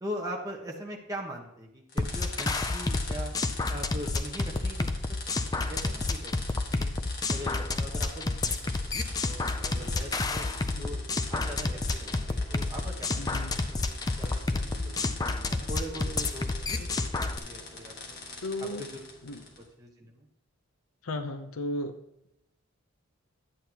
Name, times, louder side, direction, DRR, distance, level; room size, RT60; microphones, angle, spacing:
voice 1, 0.0-3.3 3.7-5.0 5.3-6.4 6.7-6.9 7.3-11.0 11.3-13.6 13.9-18.2 18.6-19.0 19.6-20.3, equal, 15° right, -2 dB, 1.2 m, -41 dB
sound 1, 1.9-19.7, left 3 dB, 45° left, 1.5 m, -44 dB
sound 2, 2.0-17.4, left 3 dB, 15° left, 0.3 m, -30 dB
sound 3, 9.5-19.6, right 2 dB, 50° right, 2.0 m, -53 dB
voice 2, 13.2-13.6 16.8-16.9 18.4-18.8 19.2-19.4 21.0-21.9, left 1 dB, 75° left, 9 dB, 0.6 m, -35 dB
11.0 x 8.5 x 2.9 m, 0.81 s
head